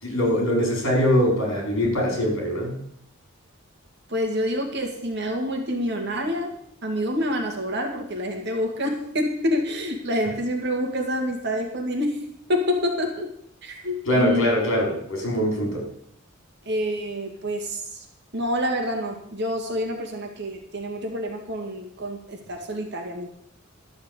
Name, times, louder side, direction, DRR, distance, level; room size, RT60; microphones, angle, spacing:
voice 1, 0.0-2.8 14.0-15.9, equal, 65° left, 0 dB, 4.9 m, -22 dB
voice 2, 4.1-6.5 6.8-12.2 12.5-13.3 13.6-14.5 16.7-18.0 18.3-23.3, equal, 55° right, 2 dB, 2.1 m, -27 dB
12.0 x 6.5 x 8.2 m, 0.70 s
head